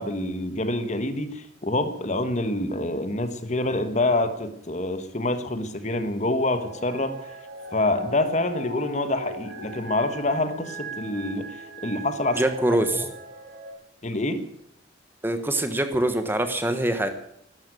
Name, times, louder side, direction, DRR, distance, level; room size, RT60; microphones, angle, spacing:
voice 1, 0.0-7.2 7.7-12.4 12.9-13.1 14.0-14.4, left 2 dB, 40° left, 9 dB, 1.4 m, -26 dB
sound 1, 6.4-13.7, right 2 dB, 70° right, 5.0 m, -40 dB
voice 2, 12.4-13.0 15.2-17.1, right 1 dB, 10° right, 8 dB, 1.3 m, -24 dB
13.0 x 12.0 x 9.1 m, 0.72 s
head